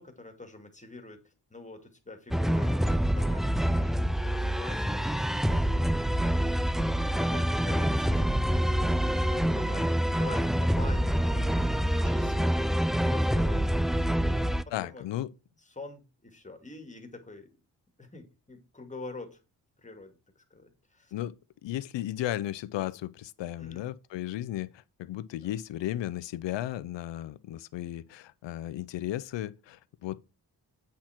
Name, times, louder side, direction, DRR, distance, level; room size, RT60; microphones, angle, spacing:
voice 1, 0.0-6.9 7.2-11.7 11.9-15.1 15.6-17.5 18.0-19.4 19.8-21.1 23.6-23.9, left 2 dB, 15° left, 2.4 m, -46 dB
sound 1, 2.3-14.6, equal, ahead, 0.4 m, -26 dB
voice 2, 14.7-15.3 21.1-21.3 21.6-24.7 25.0-30.2, left 13 dB, 85° left, 0.7 m, -35 dB
8.6 x 5.9 x 4.4 m
cardioid pair, 80°, 42 cm